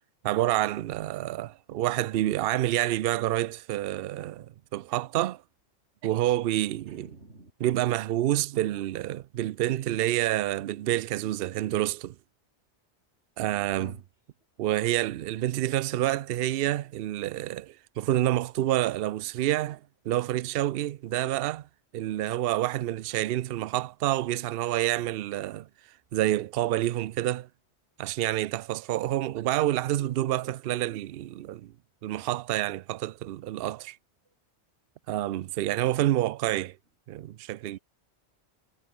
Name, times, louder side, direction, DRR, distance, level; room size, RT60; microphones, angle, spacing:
voice 1, 0.2-4.5 4.7-5.4 6.0-7.2 7.6-12.2 13.4-14.0 14.6-19.8 20.1-21.7 21.9-25.7 26.1-27.5 28.0-31.7 32.0-34.0 35.1-36.8 37.1-37.8, right 14 dB, 65° right, 0.7 m, -28 dB
voice 2, 6.9-7.5 13.8-14.0 37.7-37.8, right 2 dB, 80° right, 4.8 m, -46 dB
omnidirectional pair, 1.1 m